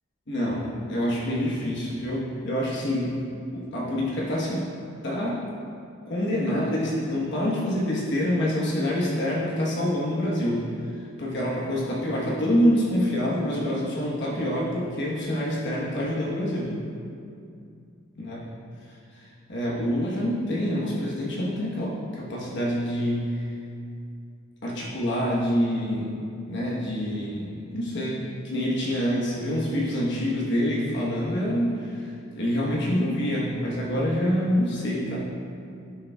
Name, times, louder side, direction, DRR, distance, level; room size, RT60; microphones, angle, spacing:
voice 1, 0.3-3.2 3.5-4.7 5.0-5.4 6.1-10.6 10.9-16.7 18.2-18.4 19.1-23.5 24.6-26.1 26.5-35.2, equal, 55° left, -5 dB, 1.1 m, -26 dB
11.0 x 6.8 x 2.3 m, 2.5 s
head